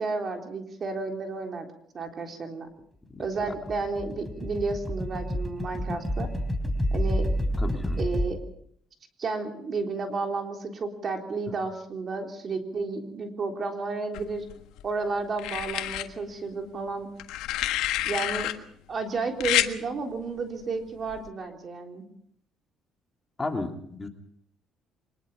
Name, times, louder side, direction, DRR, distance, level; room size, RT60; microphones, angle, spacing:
voice 1, 0.0-1.7 1.9-2.7 3.2-6.3 6.9-7.3 8.0-8.4 9.2-14.4 14.8-17.1 18.1-18.5 18.9-22.0, right 4 dB, 40° right, 3 dB, 3.6 m, -32 dB
sound 1, 3.2-8.3, equal, ahead, 4.0 m, -29 dB
voice 2, 7.6-8.0 23.4-24.1, left 3 dB, 15° left, 3 dB, 3.0 m, -33 dB
sound 2, 14.1-14.8 15.4-16.1 17.2-18.5 19.4-19.7 21.1-21.3, left 14 dB, 90° left, 1.5 m, -28 dB
24.5 x 20.5 x 5.5 m, 0.67 s
cardioid pair, 115°, 0 cm